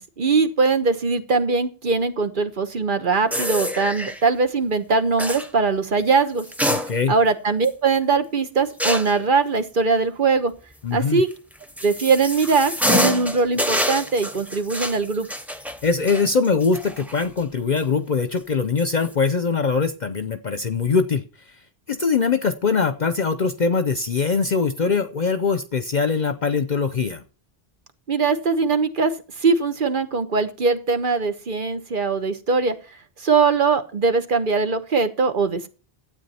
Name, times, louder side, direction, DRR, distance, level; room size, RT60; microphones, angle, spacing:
voice 1, 0.2-6.4 7.1-10.5 10.9-11.3 11.8-15.3 28.1-29.1 29.4-32.7 33.2-35.7, right 4 dB, 55° right, 9 dB, 1.3 m, -21 dB
sound 1, 3.3-4.2 5.2-5.5 6.4-7.3 7.6-7.7 8.8-9.2 11.3-17.4 17.8-17.9 18.8-19.1, equal, ahead, 0.9 m, -26 dB
voice 2, 6.7-7.1 10.8-11.2 15.8-21.2 21.9-27.2, left 5 dB, 50° left, 10 dB, 0.8 m, -22 dB
12.5 x 8.8 x 4.3 m, 0.35 s
omnidirectional pair, 1.0 m